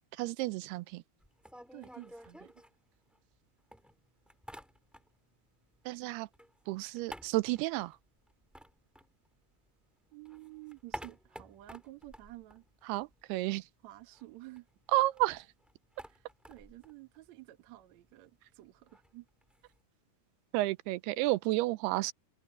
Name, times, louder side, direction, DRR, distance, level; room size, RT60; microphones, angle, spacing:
voice 1, 0.2-1.0 5.9-6.3 6.7-8.0 12.9-13.6 14.9-15.5 20.5-22.1, right 19 dB, 85° right, 2.6 m, -31 dB
sound 1, 1.2-3.4 3.7-5.3 5.6-9.8 10.1-13.4 13.6-13.7 14.0-19.8, equal, ahead, 1.1 m, -52 dB
voice 2, 1.7-2.6 10.1-12.7 13.8-14.7 16.0-19.3, right 18 dB, 60° right, 2.0 m, -51 dB
omnidirectional pair, 4.6 m